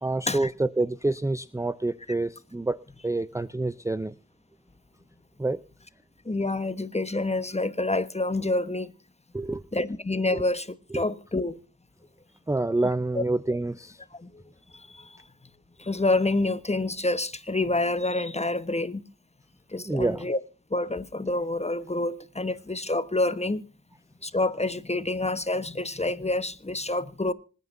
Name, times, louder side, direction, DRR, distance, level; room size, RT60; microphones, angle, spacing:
voice 1, 0.0-4.1 5.4-5.6 9.3-9.6 10.2-10.4 10.9-11.0 12.5-14.0 19.8-20.3, right 2 dB, 10° right, 0.5 m, -28 dB
voice 2, 6.2-8.9 9.7-10.7 10.9-11.6 13.1-13.2 14.2-14.4 14.7-15.2 15.8-19.0 19.7-20.4 20.7-23.6 24.2-27.3, left 2 dB, 20° left, 1.1 m, -27 dB
25.5 x 9.5 x 2.6 m
cardioid pair, 45°, 31 cm